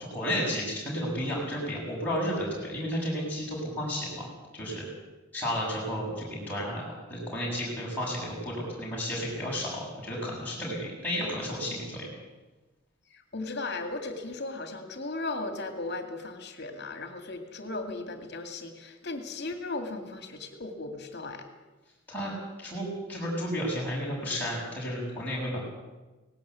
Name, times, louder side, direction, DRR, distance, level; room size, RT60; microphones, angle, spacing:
voice 1, 0.1-4.3 4.5-4.8 5.3-12.1 22.1-25.6, equal, 10° left, -6 dB, 7.4 m, -32 dB
voice 2, 13.1-21.4, left 2 dB, 50° left, 6 dB, 2.3 m, -36 dB
18.0 x 18.0 x 8.3 m, 1.2 s
head